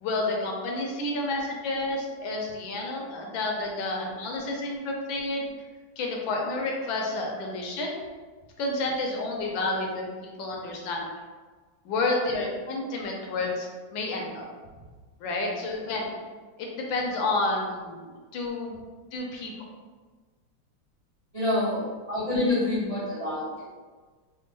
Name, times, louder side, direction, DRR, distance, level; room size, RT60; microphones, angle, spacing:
voice 1, 0.0-5.5 6.0-8.0 8.6-11.0 11.8-14.4 15.2-16.1 16.6-18.8 19.1-19.5, left 2 dB, 80° left, 0 dB, 1.4 m, -30 dB
voice 2, 21.3-23.6, left 2 dB, 65° right, -10 dB, 0.3 m, -27 dB
3.6 x 2.2 x 3.9 m, 1.4 s
omnidirectional pair, 2.1 m